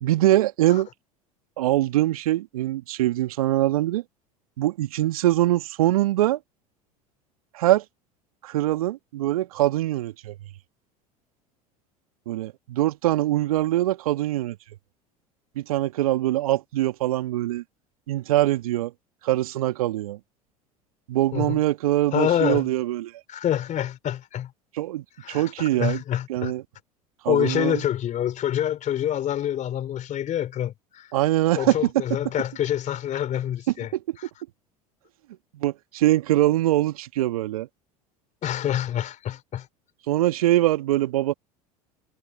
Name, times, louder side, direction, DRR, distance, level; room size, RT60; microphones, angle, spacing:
voice 1, 0.0-0.9 1.6-4.0 4.6-6.4 7.5-7.8 8.4-10.4 12.3-14.6 15.6-17.6 18.1-18.9 19.2-20.2 21.1-23.1 24.7-26.0 26.3-26.6 27.2-27.8 31.1-31.9 33.9-34.2 35.5-37.7 40.1-41.3, right 15 dB, 70° right, 2.2 m, -23 dB
voice 2, 22.1-22.6 23.3-24.5 25.2-26.5 27.3-31.1 31.6-33.9 38.4-39.7, left 11 dB, 40° left, 3.5 m, -26 dB
figure-of-eight pair, 70°, 19 cm